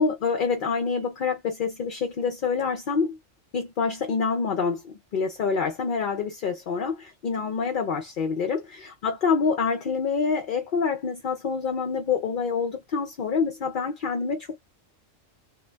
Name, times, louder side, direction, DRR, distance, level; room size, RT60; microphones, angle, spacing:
voice 1, 0.0-3.2 3.5-14.6, left 5 dB, 55° left, 0.6 m, -26 dB
2.5 x 2.5 x 3.2 m
omnidirectional pair, 1.3 m